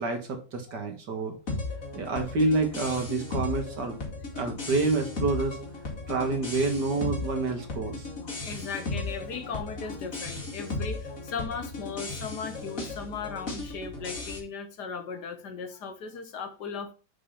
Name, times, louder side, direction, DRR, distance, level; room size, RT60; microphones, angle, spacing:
voice 1, 0.0-1.3 1.9-4.0 4.3-5.6 6.1-8.1, right 3 dB, 65° right, 2.3 m, -28 dB
sound 1, 1.5-14.4, left 3 dB, 45° left, 2.6 m, -36 dB
voice 2, 8.2-16.9, left 5 dB, 65° left, 1.6 m, -37 dB
6.5 x 5.3 x 5.7 m
omnidirectional pair, 2.0 m